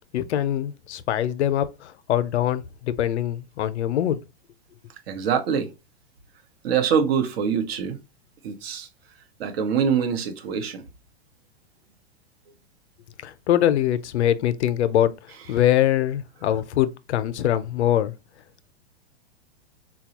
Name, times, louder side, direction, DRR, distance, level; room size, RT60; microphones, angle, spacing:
voice 1, 0.1-4.2 13.2-15.1 15.5-18.1, left 11 dB, 85° left, 0.5 m, -23 dB
voice 2, 5.1-5.7 6.6-8.0 8.4-8.9 9.4-10.8, right 7 dB, 65° right, 0.9 m, -24 dB
4.0 x 2.3 x 2.8 m
hypercardioid pair, 140°, 33 cm